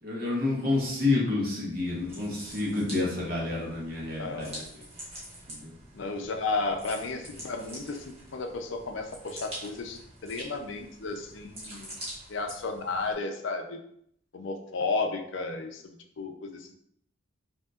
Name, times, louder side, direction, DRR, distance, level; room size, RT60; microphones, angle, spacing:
voice 1, 0.0-4.8 5.5-5.8, left 2 dB, 45° right, -4 dB, 1.2 m, -29 dB
sound 1, 1.8-13.1, right 1 dB, 30° right, 1.1 m, -45 dB
voice 2, 4.2-4.7 5.9-12.0 12.3-13.8 14.3-16.7, left 3 dB, 65° left, 5 dB, 0.5 m, -33 dB
5.3 x 2.8 x 2.4 m, 0.71 s
head